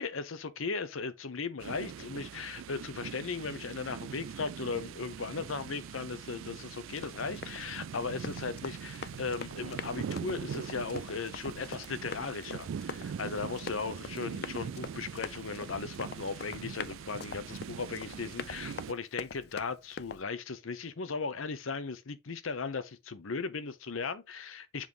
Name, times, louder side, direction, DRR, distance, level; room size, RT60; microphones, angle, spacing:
voice 1, 0.0-24.9, left 4 dB, 80° left, 0.8 m, -37 dB
sound 1, 1.6-18.9, right 7 dB, 75° right, 0.3 m, -42 dB
Run, 6.9-20.2, left 5 dB, 50° left, 0.5 m, -44 dB
7.5 x 3.1 x 5.4 m
head